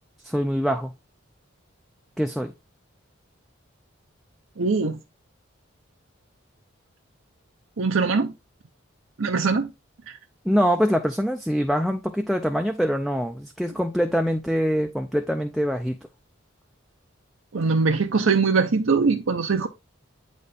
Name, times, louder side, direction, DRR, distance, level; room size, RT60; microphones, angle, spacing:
voice 1, 0.2-0.9 2.2-2.5 10.4-16.0, equal, ahead, 0.4 m, -24 dB
voice 2, 4.6-5.0 7.8-8.3 9.2-9.7 17.5-19.7, right 4 dB, 75° right, 0.7 m, -22 dB
8.5 x 4.1 x 3.4 m
head